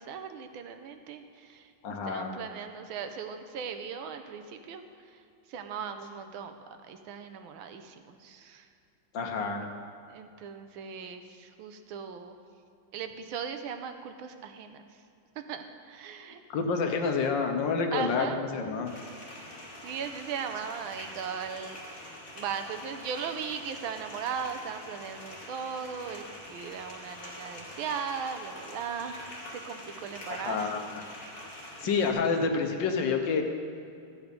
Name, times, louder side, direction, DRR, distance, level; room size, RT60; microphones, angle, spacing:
voice 1, 0.0-1.7 2.1-4.8 5.5-6.5 6.9-8.6 10.1-12.4 12.9-14.8 15.5-16.4 17.9-18.4 19.8-21.8 22.3-30.7 31.8-31.9, right 7 dB, 75° right, 8 dB, 1.5 m, -38 dB
voice 2, 1.8-2.4 9.1-9.7 16.5-18.9 30.3-31.0 31.8-33.4, left 5 dB, 65° left, 4 dB, 1.4 m, -28 dB
sound 1, 18.8-32.1, left 1 dB, 40° left, 2.7 m, -45 dB
14.0 x 8.1 x 5.2 m, 2.5 s
omnidirectional pair, 2.3 m